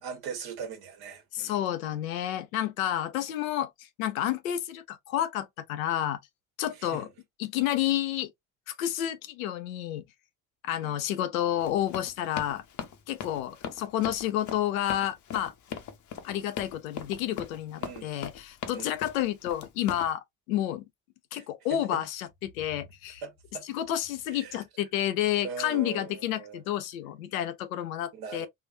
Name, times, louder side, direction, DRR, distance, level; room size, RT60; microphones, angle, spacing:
voice 1, 0.0-1.6 6.8-7.1 10.8-10.9 17.8-18.1 18.7-18.9 21.3-21.4 21.7-22.0 23.2-23.6 24.3-24.6 25.4-26.6 28.1-28.5, right 6 dB, 60° right, 1.2 m, -40 dB
voice 2, 1.3-6.2 6.6-7.1 7.4-8.3 8.7-10.0 10.6-12.6 13.1-15.5 16.2-20.8 21.3-23.2 23.6-28.5, left 12 dB, 75° left, 0.6 m, -30 dB
Run, 11.6-20.1, left 8 dB, 45° left, 0.8 m, -39 dB
3.7 x 2.5 x 2.6 m
figure-of-eight pair, 45°, 42 cm